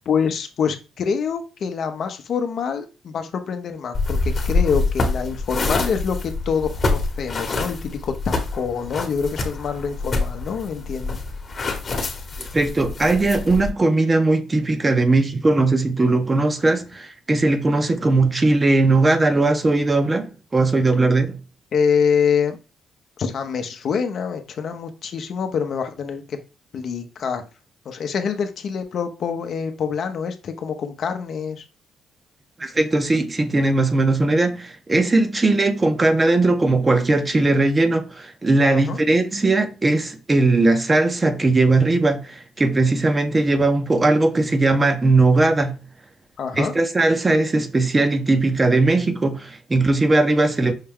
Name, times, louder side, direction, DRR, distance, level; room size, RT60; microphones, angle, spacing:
voice 1, 0.1-11.2 21.7-22.6 23.2-26.4 26.7-27.4 27.9-31.6 38.7-39.0 46.4-46.7, left 6 dB, 60° left, 0.6 m, -25 dB
sound 1, 3.9-13.7, left 3 dB, 40° left, 1.0 m, -26 dB
voice 2, 12.4-21.4 32.6-45.8 46.6-50.7, right 2 dB, 25° right, 0.6 m, -19 dB
5.6 x 2.2 x 3.5 m
cardioid pair, 90°, 0 cm